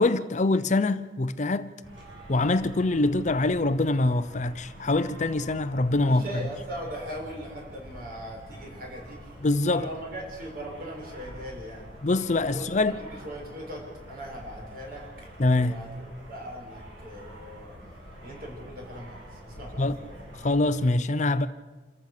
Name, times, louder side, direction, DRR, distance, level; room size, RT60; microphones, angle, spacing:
voice 1, 0.0-1.7 2.3-6.4 9.4-9.9 12.0-13.0 15.4-15.8 19.8-20.0 20.4-21.5, left 2 dB, 40° left, 0.7 m, -24 dB
sound 1, 1.8-20.9, equal, 80° right, 7.9 m, -46 dB
voice 2, 6.0-9.2 9.7-11.9 12.5-12.9 13.2-15.0 15.5-17.7 18.2-20.0, equal, 50° right, 6.6 m, -40 dB
27.5 x 14.5 x 6.7 m
head